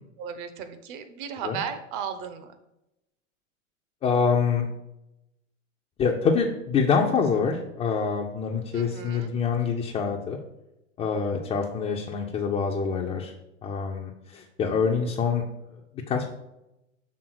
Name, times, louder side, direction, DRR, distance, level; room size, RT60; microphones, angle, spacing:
voice 1, 0.2-2.5 8.7-9.3, right 7 dB, 40° right, 9 dB, 1.0 m, -35 dB
voice 2, 4.0-4.7 6.0-10.4 11.0-13.3 13.6-15.4 16.1-16.2, left 5 dB, 15° left, -1 dB, 0.5 m, -25 dB
6.3 x 3.5 x 6.0 m, 0.91 s
hypercardioid pair, 105°, 39 cm